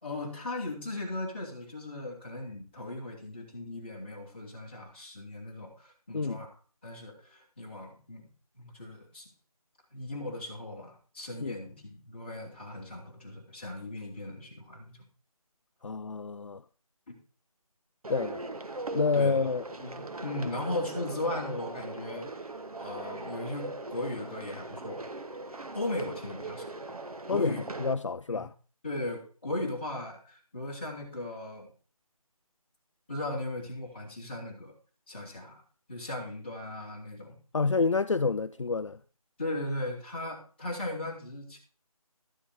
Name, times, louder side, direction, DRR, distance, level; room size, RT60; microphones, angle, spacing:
voice 1, 0.0-6.5 6.8-8.3 8.5-9.3 9.9-15.0 17.1-17.2 19.1-19.5 19.8-22.5 22.8-25.1 25.7-26.7 27.3-27.6 28.3-28.4 28.8-31.7 33.1-34.7 35.1-35.6 35.9-37.3 39.4-41.6, left 2 dB, 20° left, 2.4 m, -37 dB
voice 2, 6.1-6.4 11.4-11.6 15.8-16.6 18.1-18.4 18.9-19.6 27.3-27.5 27.8-28.5 37.5-39.0, left 4 dB, 55° left, 0.4 m, -28 dB
sound 1, 18.0-27.9, right 2 dB, 75° right, 1.4 m, -40 dB
13.0 x 7.2 x 5.0 m
figure-of-eight pair, 180°, 19 cm